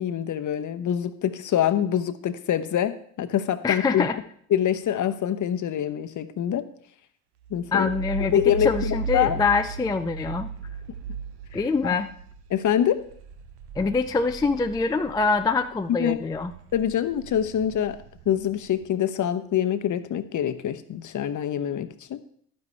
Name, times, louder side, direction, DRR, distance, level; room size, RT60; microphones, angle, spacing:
voice 1, 0.0-4.0 4.5-6.6 7.5-7.9 8.3-9.4 11.5-11.6 12.5-13.0 16.0-16.2 16.7-18.0 18.3-22.2, left 10 dB, 45° left, 10 dB, 0.9 m, -25 dB
voice 2, 3.6-4.2 7.7-10.5 11.5-12.1 13.8-16.5, left 4 dB, 10° left, 8 dB, 0.4 m, -24 dB
sound 1, 7.4-15.7 16.1-18.7, right 4 dB, 65° right, 0.9 m, -36 dB
11.5 x 9.6 x 3.3 m, 0.63 s
supercardioid pair, 70°, 44 cm